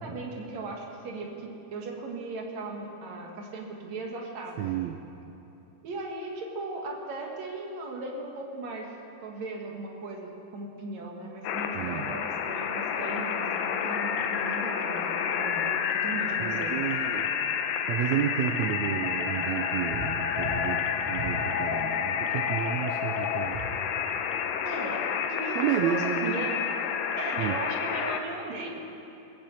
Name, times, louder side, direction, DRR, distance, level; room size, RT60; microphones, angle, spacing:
voice 1, 0.0-4.8 5.8-8.9 9.2-17.0 24.6-26.6 27.2-28.8, right 2 dB, 60° right, 0 dB, 2.7 m, -37 dB
voice 2, 4.6-5.0 11.7-12.1 16.4-17.3 17.9-23.6 25.5-26.5 27.3-27.6, right 10 dB, 85° right, 5 dB, 1.5 m, -31 dB
sound 1, 11.4-28.2, left 7 dB, 85° left, 2.4 m, -29 dB
sound 2, 19.9-20.1 20.4-20.7 21.1-21.4 23.4-23.7, right 4 dB, 45° right, 1.2 m, -37 dB
20.0 x 6.8 x 8.2 m, 2.9 s
omnidirectional pair, 3.8 m